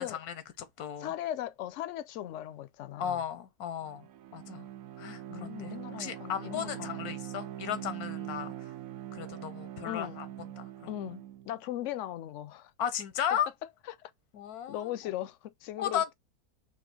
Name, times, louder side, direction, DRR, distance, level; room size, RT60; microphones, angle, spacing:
voice 1, 0.0-1.1 3.0-4.1 4.3-4.7 5.0-8.5 9.1-10.3 10.6-10.7 12.8-13.5 14.3-14.9 15.8-16.1, left 9 dB, 85° left, 1.2 m, -35 dB
voice 2, 1.0-3.2 5.3-7.3 9.8-10.2 10.9-12.7 13.3-13.4 13.9-14.1 14.7-16.0, left 12 dB, 65° left, 0.8 m, -38 dB
Bowed string instrument, 3.8-11.5, right 12 dB, 70° right, 0.9 m, -42 dB
4.4 x 2.8 x 4.3 m
omnidirectional pair, 1.6 m